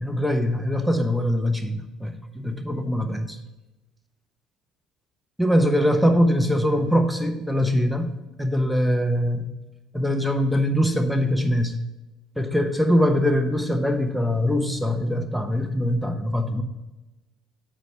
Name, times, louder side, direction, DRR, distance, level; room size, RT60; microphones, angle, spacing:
voice 1, 0.0-3.4 5.4-8.1 8.4-9.5 9.9-11.8 12.4-16.6, equal, ahead, 6 dB, 1.0 m, -22 dB
8.2 x 4.6 x 5.7 m, 1.1 s
figure-of-eight pair, 55°, 0 cm